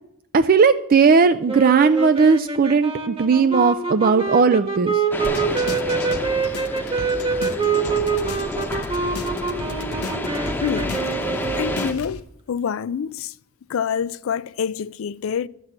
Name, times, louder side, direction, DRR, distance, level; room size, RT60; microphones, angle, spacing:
voice 1, 0.3-5.0, right 5 dB, 40° right, 0.4 m, -17 dB
sound 1, 1.5-12.0, right 5 dB, 25° right, 1.3 m, -25 dB
sound 2, 5.1-11.9, left 1 dB, 10° left, 1.0 m, -30 dB
sound 3, 5.2-12.2, left 2 dB, 80° left, 1.0 m, -35 dB
voice 2, 10.6-11.0 11.5-13.3 13.7-15.5, left 7 dB, 65° left, 0.4 m, -26 dB
12.0 x 6.1 x 8.7 m
head